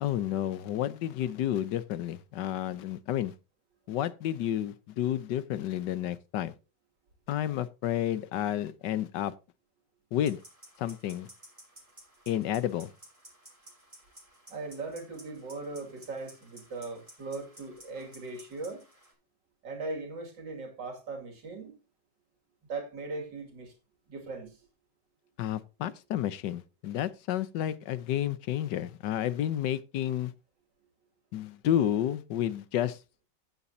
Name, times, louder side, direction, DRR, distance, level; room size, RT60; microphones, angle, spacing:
voice 1, 0.0-3.3 3.9-6.5 7.3-9.3 10.1-10.4 10.8-11.3 12.3-12.9 25.4-30.3 31.3-33.0, left 11 dB, 75° left, 1.4 m, -31 dB
sound 1, 10.2-19.1, right 1 dB, 20° right, 6.1 m, -55 dB
voice 2, 14.5-18.8 19.6-21.8 22.7-23.7 24.1-24.7, right 3 dB, 80° right, 3.1 m, -39 dB
15.5 x 8.5 x 2.8 m
omnidirectional pair, 1.9 m